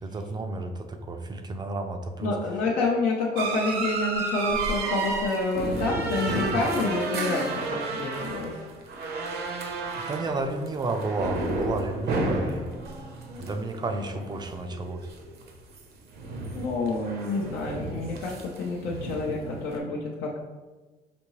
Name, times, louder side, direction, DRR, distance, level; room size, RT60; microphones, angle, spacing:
voice 1, 0.0-2.4 9.9-12.7 13.4-15.1, right 2 dB, 25° right, 6 dB, 0.4 m, -32 dB
voice 2, 2.2-8.5 16.5-20.4, left 3 dB, 85° left, -3 dB, 0.7 m, -28 dB
sound 1, 3.3-15.8 16.1-19.8, right 3 dB, 70° right, 0.8 m, -32 dB
5.1 x 2.7 x 3.1 m, 1.3 s
cardioid pair, 110°, 17 cm